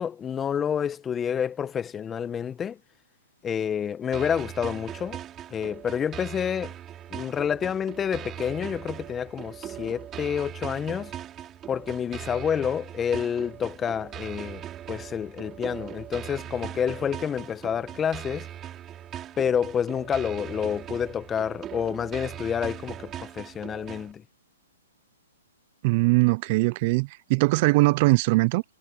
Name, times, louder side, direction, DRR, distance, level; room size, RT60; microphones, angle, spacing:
voice 1, 0.0-2.8 3.4-5.2 5.5-6.7 7.1-11.1 11.7-18.5 19.4-24.2, left 8 dB, 15° left, 1.4 m, -29 dB
sound 1, 4.1-24.1, right 11 dB, 20° right, 6.2 m, -40 dB
voice 2, 25.8-28.6, right 24 dB, 40° right, 0.7 m, -21 dB
hypercardioid pair, 130°, 0 cm